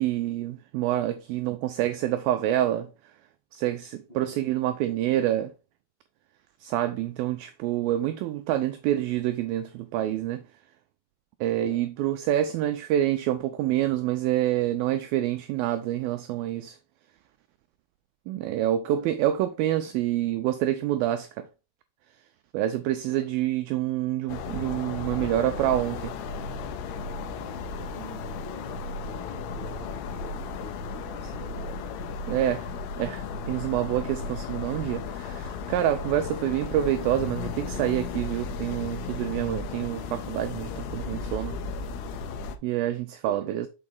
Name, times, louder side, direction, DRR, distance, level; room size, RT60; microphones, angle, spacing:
voice 1, 0.0-2.9 3.5-5.5 6.6-10.4 11.4-16.8 18.3-21.5 22.5-26.2 28.0-28.2 32.3-32.7 33.0-41.6 42.6-43.7, right 12 dB, 85° right, 2.1 m, -27 dB
voice 2, 4.1-4.4 11.6-11.9 18.9-19.1 23.1-23.3 27.3-32.2 43.2-43.6, left 1 dB, 65° left, 0.5 m, -47 dB
sound 1, 24.3-42.6, left 4 dB, 85° left, 2.7 m, -35 dB
6.6 x 4.8 x 3.9 m
omnidirectional pair, 4.8 m